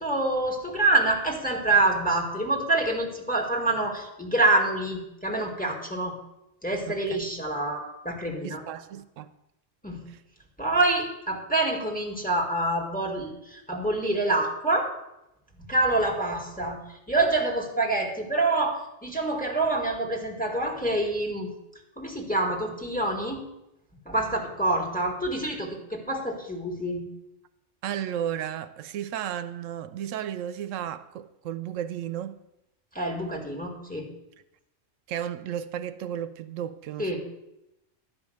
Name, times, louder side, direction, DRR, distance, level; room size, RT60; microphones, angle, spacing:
voice 1, 0.0-6.1 6.6-8.6 9.8-10.0 10.6-14.9 15.6-21.5 22.0-23.4 24.1-27.0 32.9-34.1 37.0-37.2, right 2 dB, 5° left, 1.9 m, -26 dB
voice 2, 8.4-9.3 10.1-10.2 27.8-32.4 35.1-37.2, right 10 dB, 90° right, 1.0 m, -33 dB
11.0 x 5.3 x 7.8 m
omnidirectional pair, 1.3 m